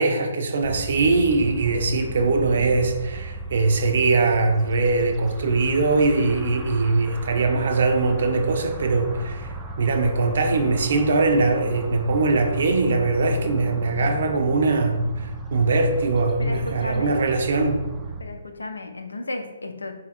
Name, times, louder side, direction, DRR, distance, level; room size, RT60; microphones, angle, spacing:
voice 1, 0.0-9.5 9.8-15.1 15.5-17.8, right 3 dB, 60° right, 5 dB, 0.7 m, -21 dB
sound 1, 0.6-18.2, right 3 dB, 15° right, 0.4 m, -36 dB
voice 2, 16.4-17.2 18.2-20.0, left 2 dB, 80° left, 5 dB, 0.6 m, -34 dB
4.2 x 2.8 x 4.2 m, 1.1 s
figure-of-eight pair, 135°, 0 cm